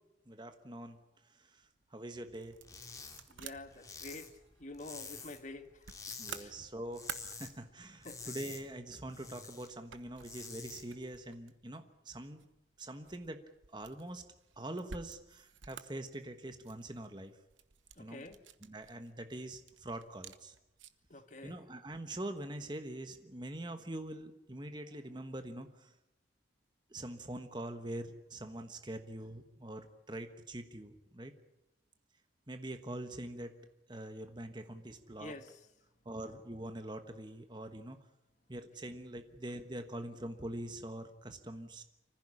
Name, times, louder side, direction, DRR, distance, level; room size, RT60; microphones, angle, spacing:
voice 1, 0.3-1.0 1.3-2.6 6.2-12.5 12.8-13.4 13.7-14.2 14.6-17.4 18.0-18.3 18.6-20.6 21.4-25.9 26.9-31.3 32.5-33.5 33.9-35.3 36.0-38.0 38.5-41.8, right 1 dB, 25° right, 8 dB, 1.2 m, -44 dB
sound 1, 1.6-21.1, right 7 dB, 80° right, 1.1 m, -54 dB
sound 2, 2.6-3.2 3.5-5.5 5.8-6.4 6.8-7.5 7.8-9.7 10.1-10.8, left 4 dB, 20° left, 2.5 m, -48 dB
voice 2, 3.3-4.3 4.6-5.7 6.4-6.5 8.0-8.2 18.0-18.4 21.1-21.6 35.2-35.5, left 2 dB, 40° left, 8 dB, 1.6 m, -47 dB
25.0 x 15.5 x 9.9 m, 0.89 s
head